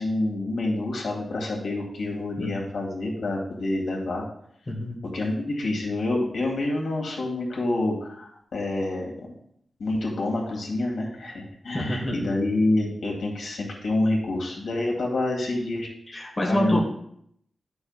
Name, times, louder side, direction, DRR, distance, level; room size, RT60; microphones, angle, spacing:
voice 1, 0.0-4.2 5.1-9.1 9.8-15.9 16.4-16.8, left 2 dB, 80° left, -1 dB, 2.1 m, -27 dB
voice 2, 4.7-5.0 11.7-12.2 16.1-16.8, left 1 dB, 25° left, -1 dB, 1.4 m, -27 dB
11.0 x 6.9 x 2.4 m, 0.70 s
wide cardioid pair, 155°, 0 cm